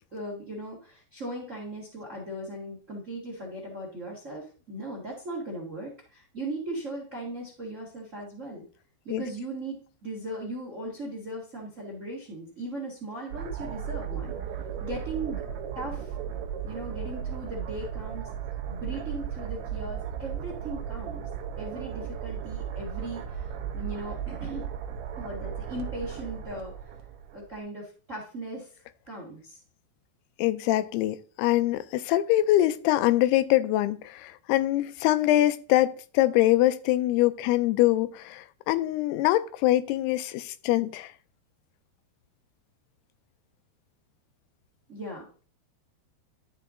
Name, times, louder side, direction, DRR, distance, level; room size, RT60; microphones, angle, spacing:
voice 1, 0.1-8.6 9.0-14.4 14.8-15.4 15.7-16.1 16.6-18.3 18.7-21.3 21.6-24.6 25.2-26.7 27.3-28.7 29.1-29.6 44.9-45.3, right 1 dB, 40° right, 1.1 m, -38 dB
sound 1, 13.3-27.5, right 8 dB, 80° right, 1.6 m, -35 dB
voice 2, 30.4-41.1, left 15 dB, 85° left, 2.6 m, -24 dB
12.0 x 4.5 x 3.7 m
omnidirectional pair, 4.6 m